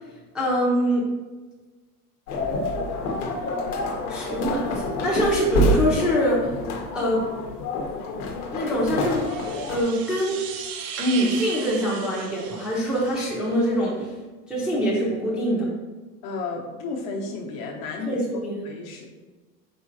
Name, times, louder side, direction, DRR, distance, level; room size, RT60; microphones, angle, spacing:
voice 1, 0.3-1.0 4.1-6.5 6.9-7.2 8.5-9.3 9.7-10.4 11.0-14.1 14.5-15.7 18.0-18.6, equal, ahead, -7 dB, 0.6 m, -24 dB
sound 1, 2.3-9.8, left 1 dB, 75° left, 0.9 m, -27 dB
sound 2, 8.8-13.5, right 7 dB, 55° right, 0.6 m, -37 dB
voice 2, 16.2-19.1, left 3 dB, 50° left, -1 dB, 0.9 m, -33 dB
4.5 x 3.7 x 2.6 m, 1.3 s
supercardioid pair, 135°, 45 cm